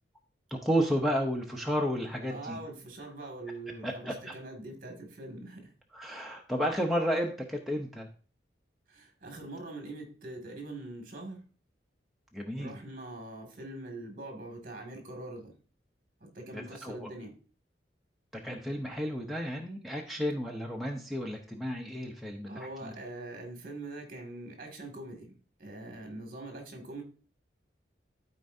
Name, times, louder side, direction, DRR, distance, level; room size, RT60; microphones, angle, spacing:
voice 1, 0.5-2.6 3.8-4.4 5.9-8.1 12.3-12.7 16.5-17.1 18.3-22.9, equal, ahead, -1 dB, 0.6 m, -32 dB
voice 2, 2.3-5.7 8.9-11.4 12.6-15.5 16.2-17.3 22.5-27.0, right 2 dB, 50° right, 2 dB, 2.0 m, -43 dB
13.0 x 4.4 x 2.6 m, 0.37 s
head